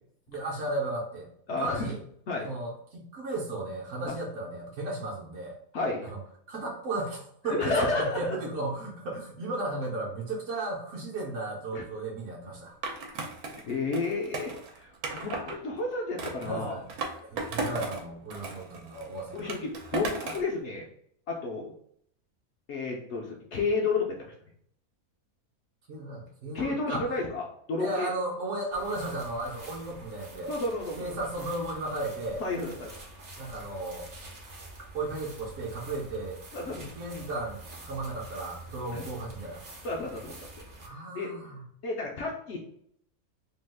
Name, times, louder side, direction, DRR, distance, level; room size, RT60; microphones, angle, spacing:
voice 1, 0.3-1.3 1.6-2.0 2.4-5.6 6.1-6.2 6.5-12.8 16.4-16.8 17.2-19.5 25.9-27.1 27.8-30.5 31.0-32.4 33.4-34.1 34.9-36.4 36.8-39.6 40.8-41.6, right 2 dB, 65° right, -4 dB, 1.0 m, -35 dB
voice 2, 1.5-1.9 2.3-2.5 4.0-4.1 5.7-6.1 7.5-8.4 11.7-11.8 13.7-16.8 19.3-20.9 21.3-21.7 22.7-24.3 26.5-28.1 30.5-31.1 32.4-32.9 36.5-36.9 38.9-39.0 39.8-40.3 41.1-41.3 41.8-42.6, left 3 dB, 65° left, -1 dB, 0.7 m, -31 dB
Skateboard, 12.8-15.6 16.2-18.0 18.3-20.5, right 3 dB, 85° right, 1.2 m, -35 dB
sound 1, 28.7-40.9, right 2 dB, 45° right, 0.5 m, -47 dB
2.8 x 2.3 x 3.4 m, 0.68 s
omnidirectional pair, 1.5 m